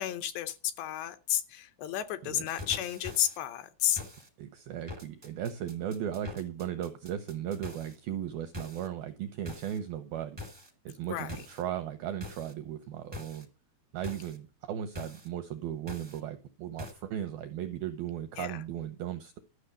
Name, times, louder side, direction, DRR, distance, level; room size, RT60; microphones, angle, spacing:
voice 1, 0.0-4.0 11.0-11.4 18.4-18.6, left 11 dB, 75° left, 2.7 m, -32 dB
sound 1, 2.5-3.4 4.0-4.3 4.9-8.0 8.5-8.9 9.5-9.8 10.4-10.7 11.3-11.6 12.2-12.5 13.1-13.4 14.0-14.4 14.9-15.3 15.9-16.2 16.8-16.9, left 2 dB, 40° right, 0.3 m, -43 dB
voice 2, 4.4-10.4 10.9-13.5 13.9-19.4, right 10 dB, 80° right, 2.1 m, -36 dB
13.0 x 6.1 x 8.0 m
omnidirectional pair, 5.5 m